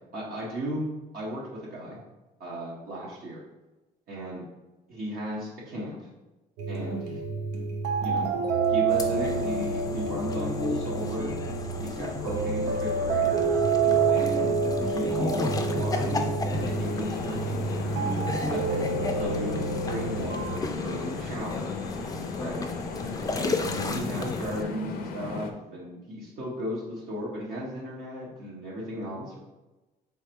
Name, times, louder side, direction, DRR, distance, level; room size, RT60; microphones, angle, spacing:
voice 1, 0.1-0.9 1.1-2.0 2.4-3.4 4.1-4.4 4.9-6.1 6.7-7.2 8.0-8.3 8.7-11.3 11.8-13.6 14.1-16.1 16.7-18.0 18.5-21.7 22.4-22.7 23.3-29.4, equal, 60° right, -5 dB, 1.1 m, -35 dB
sound 1, 6.6-20.6, right 4 dB, 80° right, 0.7 m, -28 dB
sound 2, 8.9-24.6, left 3 dB, 20° left, 0.5 m, -34 dB
sound 3, 16.5-25.5, left 5 dB, 65° left, 0.6 m, -36 dB
3.5 x 3.3 x 4.3 m, 1.1 s
cardioid pair, 110°, 17 cm